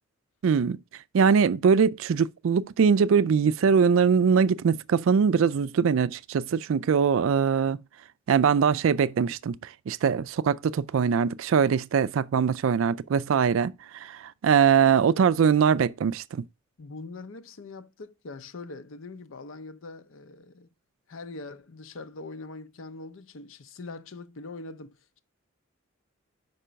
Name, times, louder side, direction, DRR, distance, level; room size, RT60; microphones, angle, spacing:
voice 1, 0.4-0.8 1.1-7.8 8.3-9.6 9.9-16.5, right 6 dB, 70° right, 0.3 m, -22 dB
voice 2, 16.8-20.7 21.1-25.2, left 3 dB, 70° left, 0.6 m, -42 dB
5.6 x 5.4 x 5.0 m
head